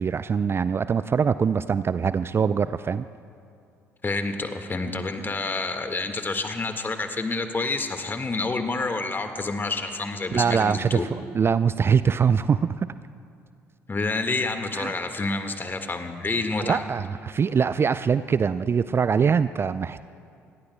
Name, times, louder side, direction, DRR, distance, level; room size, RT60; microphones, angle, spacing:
voice 1, 0.0-3.1 10.3-11.0 11.3-12.7 14.7-14.9 16.6-20.1, right 6 dB, 30° right, 14 dB, 0.4 m, -23 dB
voice 2, 4.0-11.1 13.9-16.8, left 3 dB, 25° left, 6 dB, 1.7 m, -28 dB
27.5 x 21.0 x 2.2 m, 2.4 s
figure-of-eight pair, 50°, 8 cm